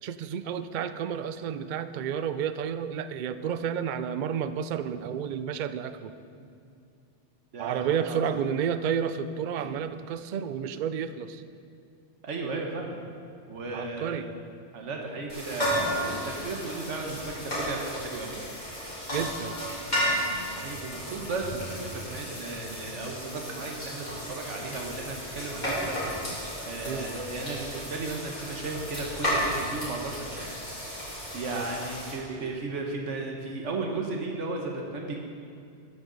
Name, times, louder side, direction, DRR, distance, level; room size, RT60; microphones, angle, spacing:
voice 1, 0.0-6.1 7.6-11.4 13.7-14.3 19.1-19.6 26.9-27.1 31.5-31.7 32.3-32.5, right 8 dB, 55° right, 11 dB, 0.5 m, -31 dB
voice 2, 7.5-8.4 9.6-9.8 12.2-13.0 13.5-14.2 14.7-18.4 20.6-26.4 26.7-30.6 30.9-35.2, right 3 dB, 90° right, 1 dB, 1.5 m, -35 dB
sound 1, 15.3-32.1, equal, 40° left, 3.5 m, -33 dB
14.0 x 9.4 x 4.0 m, 2.4 s
omnidirectional pair, 1.2 m